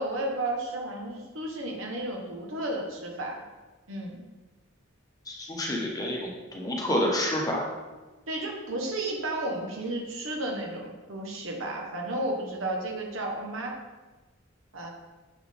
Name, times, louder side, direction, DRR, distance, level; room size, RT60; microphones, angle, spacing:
voice 1, 0.0-3.4 3.9-4.2 8.3-13.8 14.7-14.9, right 1 dB, 80° right, 0 dB, 1.2 m, -33 dB
voice 2, 5.3-7.7, left 1 dB, 15° left, -2 dB, 0.9 m, -28 dB
7.0 x 4.4 x 3.5 m, 1.2 s
head